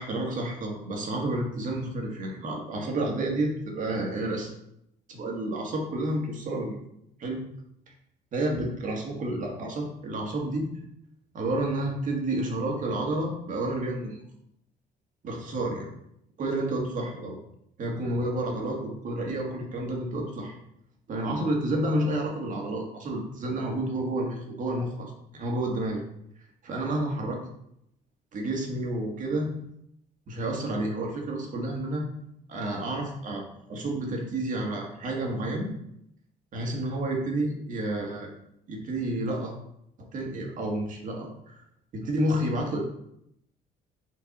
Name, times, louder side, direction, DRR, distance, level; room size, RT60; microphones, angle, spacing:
voice 1, 0.0-4.5 5.1-6.8 7.2-7.4 8.3-10.7 11.3-14.2 15.2-15.9 16.4-17.4 17.8-20.6 21.1-26.0 26.6-27.4 28.3-29.5 30.3-32.1 32.5-33.4 33.7-35.7 36.5-38.3 38.7-39.5 40.1-41.6 41.9-42.8, right 1 dB, 50° right, 0 dB, 1.7 m, -30 dB
5.0 x 4.5 x 4.2 m, 0.75 s
cardioid pair, 110°, 17 cm